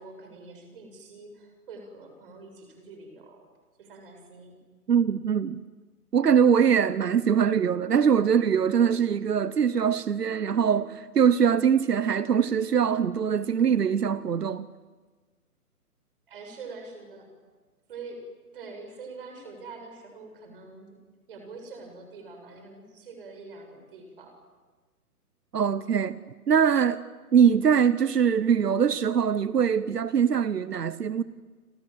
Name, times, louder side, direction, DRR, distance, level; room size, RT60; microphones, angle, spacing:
voice 1, 0.0-3.4 3.8-4.6 16.3-17.3 17.9-18.2 18.5-21.0 21.3-24.4, right 3 dB, 35° right, 7.1 m, -44 dB
voice 2, 4.9-5.6 6.1-14.7 25.5-26.2 26.5-27.0 27.3-31.2, right 7 dB, 90° right, 1.1 m, -22 dB
29.5 x 26.0 x 7.7 m
hypercardioid pair, 165°, 46 cm